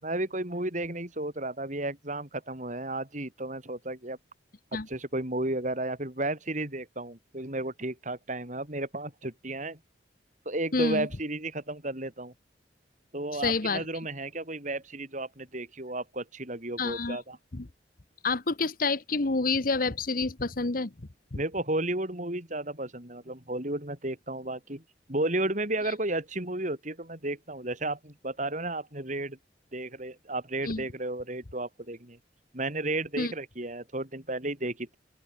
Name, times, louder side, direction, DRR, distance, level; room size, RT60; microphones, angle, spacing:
voice 1, 0.0-4.2 4.7-9.8 10.5-12.3 13.1-17.4 21.3-24.8 25.1-29.4 29.7-32.2 32.5-35.0, right 2 dB, 45° right, 5.6 m, -33 dB
voice 2, 10.7-11.1 13.3-13.8 16.8-17.2 17.5-17.7 18.2-20.9 30.6-30.9 33.2-33.3, left 3 dB, 50° left, 1.1 m, -28 dB
open air
head